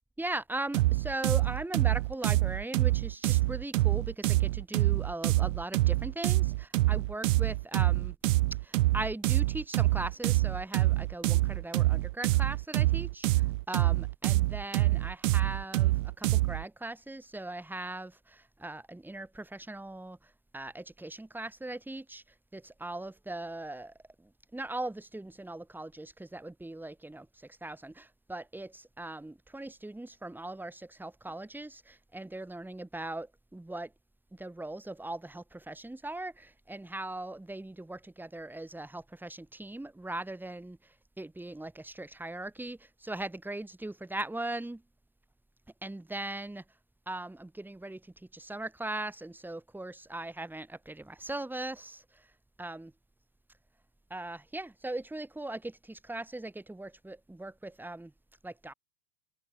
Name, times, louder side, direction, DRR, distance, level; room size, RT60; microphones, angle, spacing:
voice 1, 0.2-8.1 8.6-22.2 22.5-33.9 34.3-44.8 45.8-46.6 47.1-52.3 52.6-52.9 54.1-58.1 58.4-58.7, right 2 dB, 5° right, 3.1 m, -39 dB
sound 1, 0.7-16.6, right 18 dB, 65° right, 0.9 m, -26 dB
hypercardioid pair, 95°, 41 cm